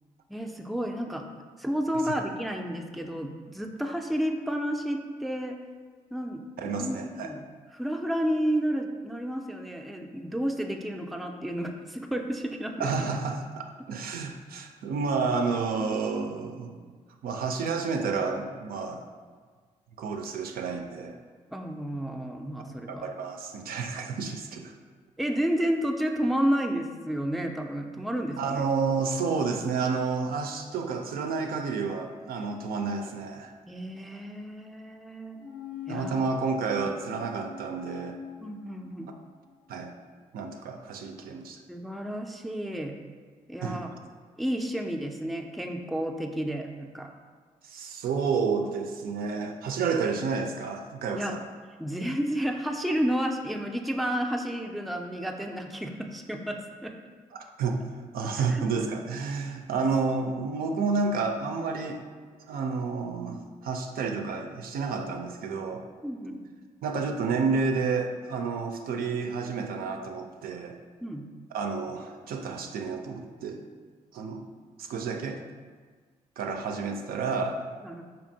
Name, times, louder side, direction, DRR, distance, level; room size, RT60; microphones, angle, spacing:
voice 1, 0.3-1.2 1.6-5.6 6.1-7.0 7.2-7.4 7.7-12.9 21.5-23.0 25.2-28.6 33.7-35.4 35.9-36.2 38.4-39.1 41.7-42.9 43.5-43.9 44.4-47.1 51.1-51.4 51.8-56.9 58.3-58.7 66.0-66.4 71.0-71.3 77.8-78.0, equal, ahead, 3 dB, 0.4 m, -31 dB
voice 2, 6.6-7.3 12.8-16.8 17.2-19.0 20.0-21.2 22.9-24.7 28.4-33.5 35.9-38.2 39.7-39.9 40.3-41.6 43.6-43.8 47.6-51.4 57.3-57.8 58.1-62.0 62.5-65.8 66.8-70.8 71.5-73.6 74.1-74.5 74.8-75.4 76.4-77.7, right 4 dB, 70° right, 4 dB, 0.4 m, -30 dB
sound 1, 35.4-39.2 39.5-39.6, left 5 dB, 55° left, 0.6 m, -42 dB
4.3 x 2.8 x 2.6 m, 1.5 s
supercardioid pair, 45°, 16 cm